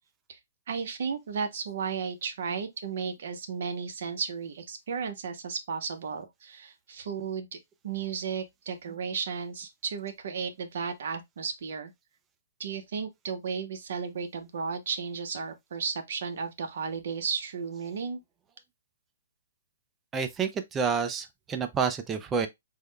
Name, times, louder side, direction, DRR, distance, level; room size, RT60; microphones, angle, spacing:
voice 1, 0.7-7.6 7.8-11.9 12.6-18.2, right 6 dB, 60° right, 0.7 m, -34 dB
voice 2, 20.1-22.5, right 6 dB, 10° right, 0.3 m, -29 dB
3.5 x 2.1 x 3.2 m
hypercardioid pair, 165°, 0 cm